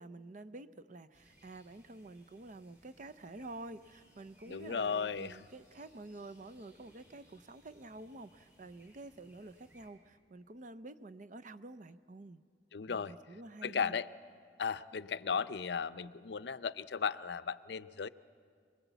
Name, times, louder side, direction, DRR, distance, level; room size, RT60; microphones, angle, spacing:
voice 1, 0.0-12.4 12.9-13.9, right 2 dB, 45° right, 12 dB, 0.6 m, -49 dB
sound 1, 1.1-9.9, equal, 15° right, 6.6 m, -65 dB
voice 2, 4.5-5.4 12.7-13.1 13.6-14.1 14.6-18.1, left 6 dB, 70° left, 14 dB, 0.5 m, -35 dB
26.5 x 20.5 x 8.2 m, 2.1 s
head